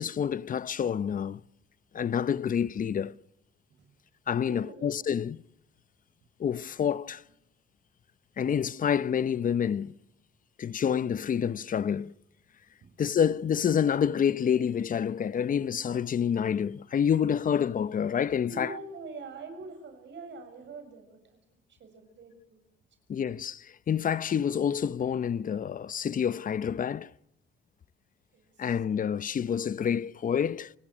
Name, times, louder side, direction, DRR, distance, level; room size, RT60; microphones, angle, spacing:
voice 1, 0.0-1.4 1.9-3.2 4.3-5.4 6.4-7.2 8.4-9.9 10.6-12.1 13.0-18.7 23.1-27.1 28.6-30.7, left 8 dB, 45° left, 0.7 m, -28 dB
voice 2, 4.4-5.1 12.8-12.9 18.5-21.4 21.7-22.7 28.3-28.7, right 3 dB, 65° right, 6.9 m, -44 dB
29.0 x 18.5 x 6.2 m
cardioid pair, 90°, 20 cm